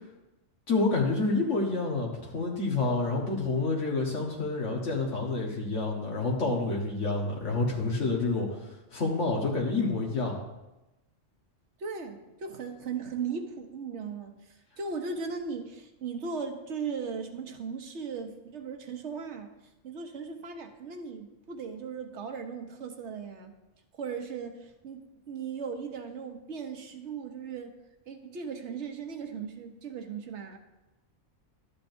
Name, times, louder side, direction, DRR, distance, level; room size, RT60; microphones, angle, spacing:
voice 1, 0.7-8.6 8.9-10.4, left 3 dB, 75° left, -1 dB, 1.6 m, -28 dB
voice 2, 11.8-19.5 19.8-23.5 23.9-25.0 25.3-27.7 28.1-30.6, right 5 dB, 70° right, 6 dB, 1.2 m, -37 dB
12.0 x 8.4 x 2.6 m, 1.0 s
omnidirectional pair, 1.3 m